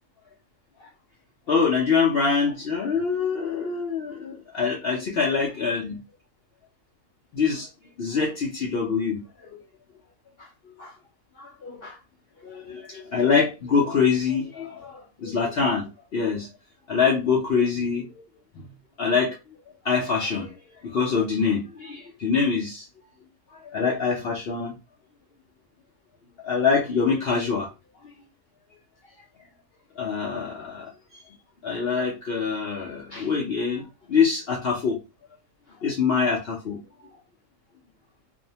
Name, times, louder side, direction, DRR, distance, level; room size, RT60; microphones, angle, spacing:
voice 1, 1.5-6.0 7.3-7.7 8.0-9.2 9.5-9.6 10.4-10.5 10.8-10.9 11.4-12.0 12.4-16.5 16.9-18.0 18.6-18.7 19.0-19.4 19.8-20.6 20.8-22.9 23.5-24.8 26.4-27.7 30.0-31.2 31.6-35.0 35.8-36.8, left 5 dB, 60° left, 0.7 m, -25 dB
2.6 x 2.1 x 2.7 m
omnidirectional pair, 1.5 m